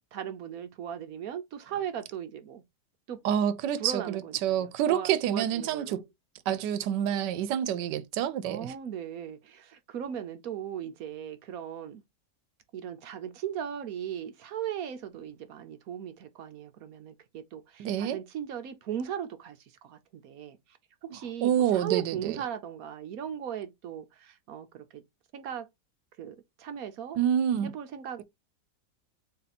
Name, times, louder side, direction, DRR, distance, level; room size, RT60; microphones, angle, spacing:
voice 1, 0.1-2.6 3.1-3.2 3.8-6.0 8.4-12.0 12.7-19.6 19.8-20.6 21.0-25.0 25.3-25.7 26.2-27.2 27.6-28.2, right 9 dB, 65° right, 1.0 m, -38 dB
voice 2, 3.2-6.0 6.5-8.7 17.8-18.2 21.4-22.4 27.2-27.7, right 10 dB, 90° right, 1.2 m, -27 dB
3.9 x 2.7 x 4.1 m
omnidirectional pair, 1.8 m